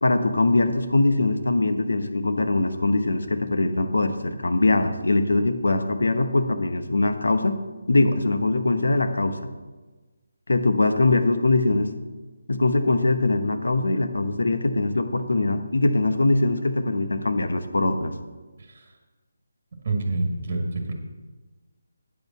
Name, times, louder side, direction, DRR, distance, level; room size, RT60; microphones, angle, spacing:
voice 1, 0.0-7.6 7.9-9.4 10.5-11.9 12.5-18.1, left 2 dB, 75° left, 8 dB, 0.9 m, -22 dB
voice 2, 18.6-18.9 19.8-20.9, right 2 dB, 40° right, 2 dB, 1.6 m, -27 dB
9.1 x 5.3 x 7.5 m, 1.3 s
figure-of-eight pair, 155°, 0 cm